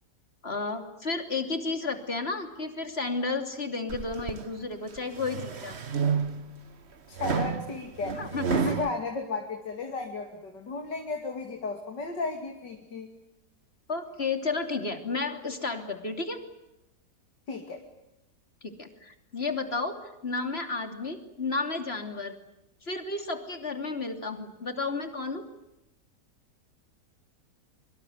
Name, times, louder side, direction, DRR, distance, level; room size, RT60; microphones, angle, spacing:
voice 1, 0.4-5.8 8.2-8.4 13.9-16.4 18.6-20.0 20.2-22.3 22.8-25.4, left 3 dB, 35° left, 7 dB, 3.3 m, -32 dB
sound 1, 3.9-4.4 5.0-6.6 7.2-8.9, right 6 dB, 40° right, 1.4 m, -30 dB
voice 2, 7.1-8.2 8.5-13.1 17.5-17.8, left 3 dB, 80° left, 4 dB, 3.3 m, -34 dB
25.0 x 24.5 x 9.2 m, 0.91 s
omnidirectional pair, 1.9 m